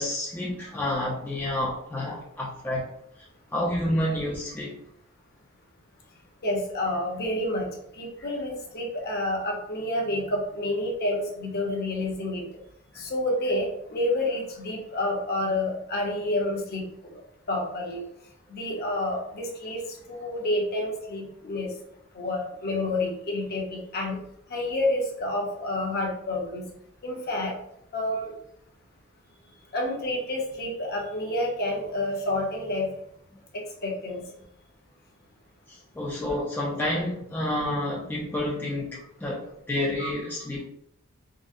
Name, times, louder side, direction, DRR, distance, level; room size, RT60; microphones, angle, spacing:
voice 1, 0.0-2.9 3.5-4.8 8.2-8.3 12.9-13.0 33.3-33.4 35.7-40.7, left 1 dB, 10° left, -5 dB, 0.4 m, -29 dB
voice 2, 6.4-7.7 8.0-12.4 13.0-16.8 17.1-17.2 17.5-18.0 18.5-19.8 20.1-21.7 22.1-24.2 24.5-26.7 27.0-27.6 27.9-28.3 29.7-32.9 33.5-34.2 40.0-40.1, left 1 dB, 45° left, -1 dB, 0.7 m, -29 dB
3.7 x 2.0 x 2.6 m, 0.74 s
head